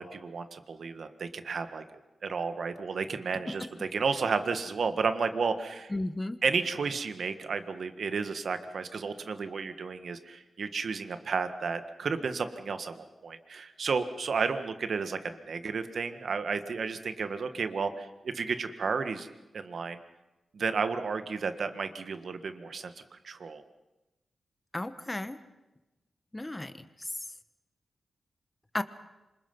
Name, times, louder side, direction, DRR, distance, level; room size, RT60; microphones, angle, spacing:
voice 1, 0.0-1.8 2.2-5.9 6.4-19.3 19.5-20.0 20.5-22.9 23.2-23.6, right 5 dB, 65° right, 9 dB, 1.7 m, -32 dB
voice 2, 5.9-6.4 24.7-25.4 26.3-26.8 28.7-28.8, left 1 dB, 15° left, 11 dB, 1.2 m, -34 dB
27.0 x 25.0 x 5.5 m, 1.0 s
wide cardioid pair, 95°, 0 cm